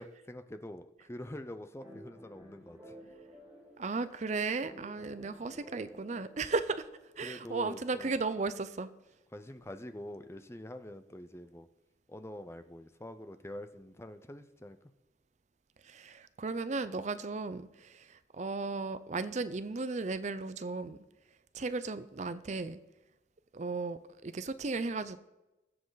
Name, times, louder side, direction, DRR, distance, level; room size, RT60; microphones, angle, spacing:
voice 1, 0.0-3.0 5.0-5.1 7.2-8.2 9.3-11.7 12.1-14.8, left 1 dB, 15° left, 9 dB, 0.6 m, -45 dB
sound 1, 1.8-7.5, equal, 10° right, 3.6 m, -53 dB
voice 2, 3.8-6.9 7.2-8.9 15.8-21.0 21.5-22.8 23.5-25.2, right 3 dB, 40° right, 13 dB, 0.5 m, -35 dB
20.5 x 7.5 x 4.0 m, 0.99 s
head